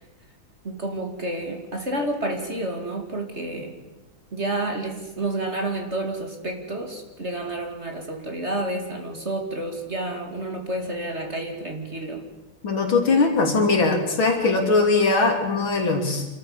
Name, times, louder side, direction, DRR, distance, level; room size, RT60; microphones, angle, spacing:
voice 1, 0.6-3.8 4.3-12.2 13.1-13.3, right 1 dB, 30° right, 3 dB, 2.5 m, -30 dB
voice 2, 12.6-16.3, left 3 dB, 70° left, 3 dB, 3.8 m, -20 dB
27.0 x 14.0 x 7.2 m, 1.1 s
omnidirectional pair, 2.3 m